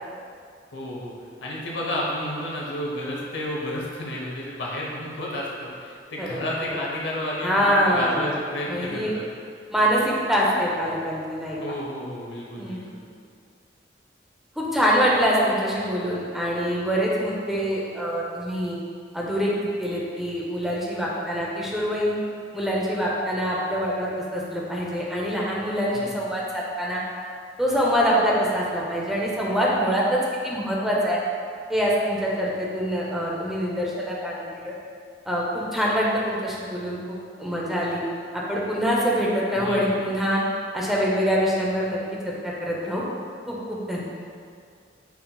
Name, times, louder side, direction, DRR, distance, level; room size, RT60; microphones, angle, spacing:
voice 1, 0.7-1.1 1.4-9.2 11.6-13.0 25.9-26.2 39.6-39.9, left 1 dB, 85° left, -3 dB, 0.7 m, -31 dB
voice 2, 6.2-6.7 7.4-8.3 8.7-9.1 9.7-11.8 12.6-12.8 14.6-18.8 19.1-19.5 19.8-22.2 22.5-27.0 27.6-31.2 31.7-34.7 35.3-38.0 38.3-40.4 40.7-42.0 42.2-43.0 43.5-44.0, equal, ahead, -5 dB, 0.4 m, -25 dB
5.7 x 2.7 x 2.2 m, 2.2 s
head